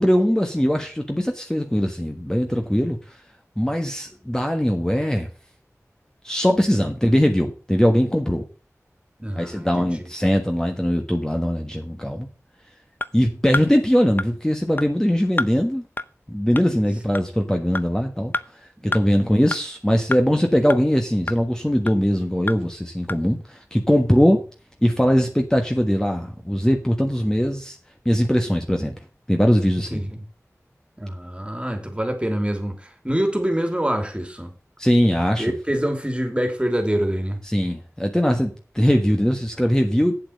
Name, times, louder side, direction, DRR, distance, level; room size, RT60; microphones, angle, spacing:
voice 1, 0.0-3.0 3.6-5.3 6.2-8.4 9.3-12.3 13.1-15.8 16.3-18.3 18.8-24.4 24.8-27.7 28.0-28.9 29.3-30.0 34.8-35.5 37.5-40.1, equal, 10° left, 1.4 m, -21 dB
voice 2, 9.2-10.1 17.1-17.3 18.8-19.4 24.2-24.4 29.7-30.2 31.0-34.5 35.4-37.4, right 1 dB, 20° right, 2.7 m, -26 dB
sound 1, 13.0-13.1 13.5-13.7 14.2-14.3 14.8-14.9 15.4-15.5 16.0-16.1 16.6-16.7 17.1-17.3 17.7-17.9 18.3-18.4 18.9-19.0 19.5-19.6 20.1-20.2 20.7-20.8 21.3-21.4 21.9-22.0 22.5-22.6 23.1-23.2, left 2 dB, 35° left, 0.6 m, -26 dB
8.6 x 7.6 x 6.7 m
wide cardioid pair, 55°, 6 cm